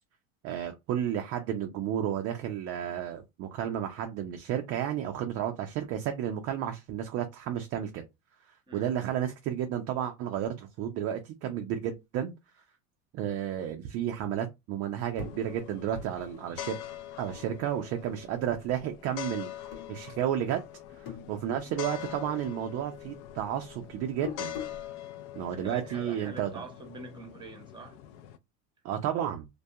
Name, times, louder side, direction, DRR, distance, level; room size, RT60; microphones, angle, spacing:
voice 1, 0.4-8.0 8.7-12.3 13.1-16.8 17.2-19.5 19.9-20.6 21.0-24.5 25.4-26.5 28.8-29.5, right 10 dB, 35° right, 0.4 m, -32 dB
sound 1, 15.2-18.1 18.4-19.2 19.6-20.6 20.8-22.2 22.4-24.9, left 5 dB, 75° left, 1.0 m, -44 dB
sound 2, 15.2-28.4, left 12 dB, 50° left, 0.5 m, -44 dB
voice 2, 25.6-28.0, right 3 dB, 10° right, 0.8 m, -44 dB
2.2 x 2.2 x 2.7 m
supercardioid pair, 110°, 43 cm